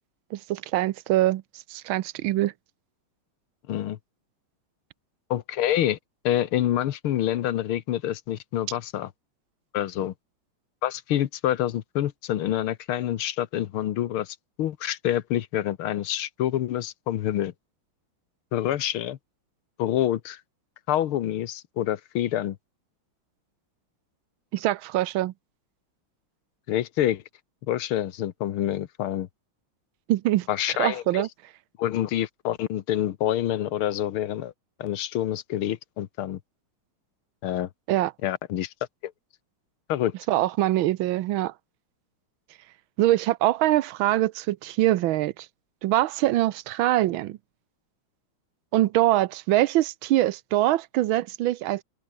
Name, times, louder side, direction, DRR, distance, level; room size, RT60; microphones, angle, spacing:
voice 1, 0.3-1.4 1.7-2.5 24.5-25.3 30.1-30.5 30.8-31.3 37.9-38.1 40.3-41.5 43.0-45.5 45.8-47.4 48.7-51.8, right 15 dB, 75° right, 1.5 m, -23 dB
voice 2, 3.7-4.0 5.3-6.0 6.2-9.1 9.7-10.1 10.8-17.5 18.5-19.2 19.8-20.4 20.9-22.6 26.7-27.2 27.7-29.3 30.5-31.3 31.8-34.5 34.8-36.4 37.4-37.7 38.2-38.7 39.0-39.1 39.9-40.1, left 12 dB, 85° left, 1.9 m, -27 dB
omnidirectional pair, 2.3 m